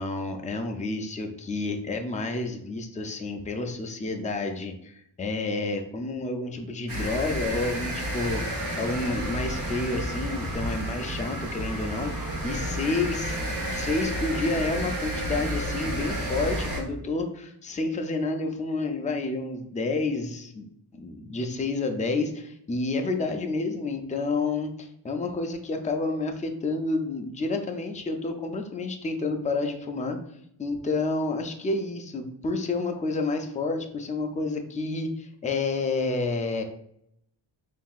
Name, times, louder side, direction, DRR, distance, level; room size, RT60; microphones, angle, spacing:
voice 1, 0.0-20.6 20.9-30.2 30.6-36.6, left 3 dB, 15° left, 4 dB, 0.4 m, -30 dB
sound 1, 6.9-16.8, right 1 dB, 75° right, 1.2 m, -31 dB
5.5 x 2.7 x 2.4 m, 0.73 s
wide cardioid pair, 100°, 48 cm